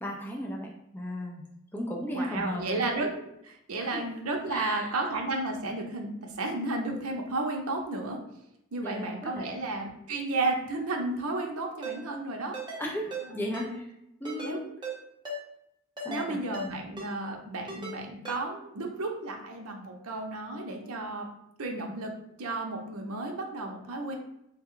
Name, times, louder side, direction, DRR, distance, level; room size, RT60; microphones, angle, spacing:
voice 1, 0.0-2.8 3.8-4.0 4.5-5.0 8.8-9.5 12.8-13.9 14.2-14.6 16.0-16.5, equal, 10° left, -1 dB, 0.3 m, -36 dB
voice 2, 2.1-3.1 3.4-8.2 8.7-12.6 13.3-13.8 14.4-14.6 16.1-21.3 21.6-22.1 22.4-24.2, right 2 dB, 75° right, 2 dB, 0.6 m, -33 dB
Ringtone, 11.8-12.0 12.5-12.8 13.1-13.2 13.5-13.7 14.3-14.5 14.8-15.0 15.3-15.4 16.0-16.2 16.5-16.7 17.0-17.1 17.7-17.9 18.3-18.4, right 2 dB, 20° right, 0.8 m, -36 dB
3.3 x 2.2 x 3.6 m, 0.82 s
head